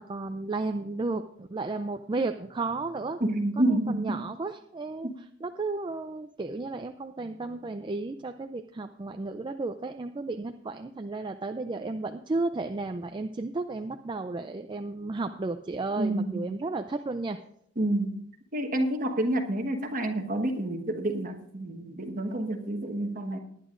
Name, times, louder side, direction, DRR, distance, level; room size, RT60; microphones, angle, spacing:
voice 1, 0.0-3.2 3.9-5.1 5.4-17.4, right 3 dB, 25° right, 7 dB, 0.4 m, -33 dB
voice 2, 3.2-4.2 5.0-5.2 16.0-16.5 17.8-18.2 18.5-23.4, right 1 dB, 45° right, 4 dB, 1.3 m, -29 dB
19.0 x 10.0 x 2.5 m, 0.73 s
head